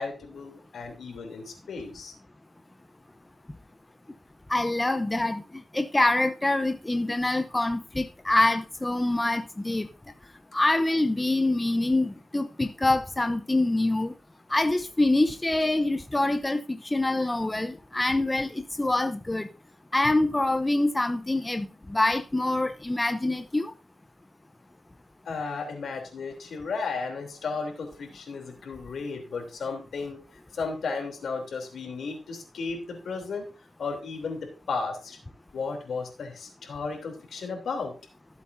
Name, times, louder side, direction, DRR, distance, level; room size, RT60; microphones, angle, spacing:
voice 1, 0.0-2.1 25.2-33.5 33.8-35.2 35.5-37.9, left 4 dB, 80° left, 3.1 m, -34 dB
voice 2, 4.5-9.9 10.5-14.1 14.5-19.5 19.9-23.7, left 2 dB, 15° left, 0.7 m, -25 dB
15.0 x 8.2 x 2.6 m
cardioid pair, 85°, 0 cm